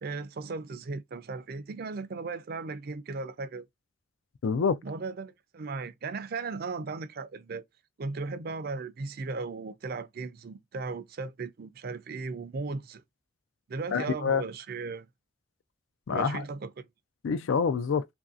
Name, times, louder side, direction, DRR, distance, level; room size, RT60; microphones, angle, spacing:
voice 1, 0.0-3.6 4.8-7.6 8.0-13.0 13.7-15.1 16.1-16.7, right 4 dB, 50° right, 0.4 m, -36 dB
voice 2, 4.4-4.8 13.9-14.4 16.1-16.4 17.2-18.1, left 6 dB, 75° left, 0.4 m, -26 dB
3.1 x 2.6 x 2.3 m
head